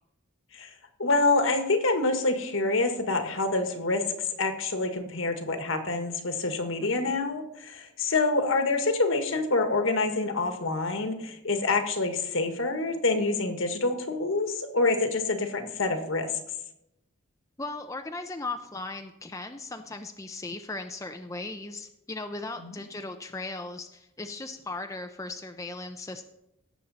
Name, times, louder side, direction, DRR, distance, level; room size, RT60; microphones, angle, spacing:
voice 1, 1.0-4.0 4.4-16.3 22.6-22.8, left 3 dB, 70° left, 6 dB, 1.6 m, -26 dB
voice 2, 17.6-26.3, left 2 dB, 15° left, 6 dB, 0.5 m, -37 dB
17.0 x 7.2 x 4.2 m, 0.86 s
head